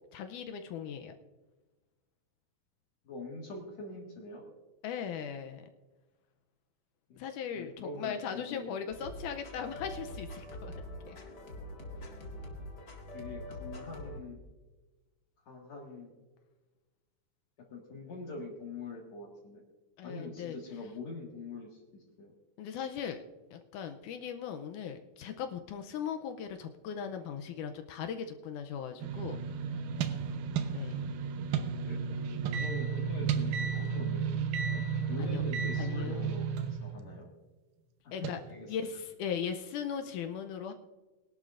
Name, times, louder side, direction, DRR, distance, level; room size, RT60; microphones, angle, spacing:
voice 1, 0.1-1.1 4.8-5.7 7.2-10.7 11.1-11.2 20.0-20.6 22.6-23.2 23.5-29.4 30.7-31.0 32.5-32.7 35.2-35.4 35.8-36.4 38.1-38.4 38.7-40.7, left 7 dB, 75° left, 6 dB, 2.1 m, -38 dB
voice 2, 3.0-4.4 7.1-7.3 7.5-8.8 13.1-14.4 15.5-16.1 17.7-19.6 20.0-22.3 31.8-32.0 32.6-34.8 35.1-37.3 38.0-39.0, left 2 dB, 60° left, -3 dB, 2.9 m, -44 dB
sound 1, 8.9-14.2, left 1 dB, 35° left, 2.1 m, -44 dB
sound 2, 29.0-37.2 38.2-38.3, right 6 dB, 90° right, 2.5 m, -33 dB
22.0 x 11.5 x 2.5 m, 1.2 s
omnidirectional pair, 3.7 m